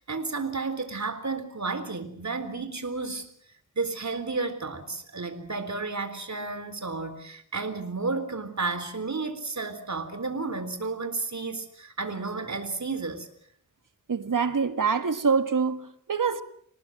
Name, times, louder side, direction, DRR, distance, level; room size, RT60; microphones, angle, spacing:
voice 1, 0.0-3.3 3.8-13.3, right 3 dB, 55° right, 3.9 m, -32 dB
voice 2, 14.1-16.4, right 5 dB, 75° right, 1.7 m, -25 dB
26.5 x 19.0 x 7.7 m
wide cardioid pair, 65°, 33 cm